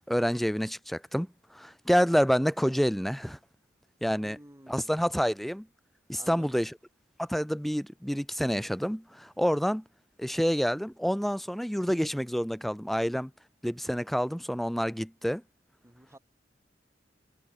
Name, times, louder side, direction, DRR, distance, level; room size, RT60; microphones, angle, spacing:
voice 1, 0.1-1.3 1.5-3.4 4.0-4.4 4.7-5.7 6.1-6.7 7.2-9.8 10.2-13.3 13.6-15.4, equal, ahead, 0.6 m, -28 dB
voice 2, 4.2-5.1 6.1-6.6 15.8-16.2, right 1 dB, 15° right, 2.4 m, -52 dB
head